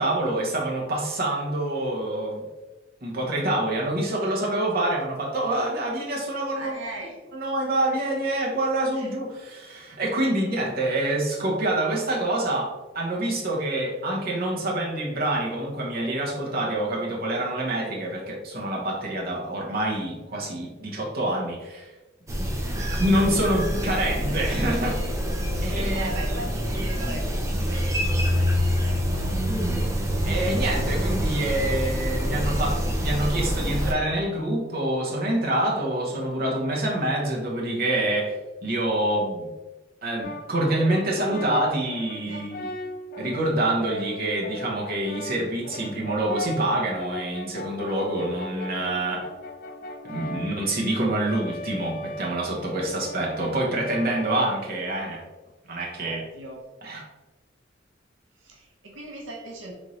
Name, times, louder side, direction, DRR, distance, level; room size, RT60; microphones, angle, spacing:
voice 1, 0.0-2.4 3.0-6.8 7.3-21.9 22.8-25.0 25.6-26.1 30.2-38.4 38.6-39.5 40.0-42.7 43.2-49.3 50.0-55.2 55.7-56.2 56.8-57.0, right 1 dB, 55° right, -2 dB, 1.0 m, -26 dB
voice 2, 6.5-7.2 8.9-9.1 24.1-24.5 25.5-29.6 42.3-42.5 52.5-52.9 56.0-56.6 58.4-59.7, right 2 dB, 90° right, -1 dB, 0.8 m, -39 dB
sound 1, 22.3-33.9, equal, 15° right, 0.6 m, -26 dB
Brass instrument, 40.2-55.0, left 2 dB, 50° left, 0.4 m, -38 dB
4.0 x 3.5 x 3.1 m, 1.1 s
head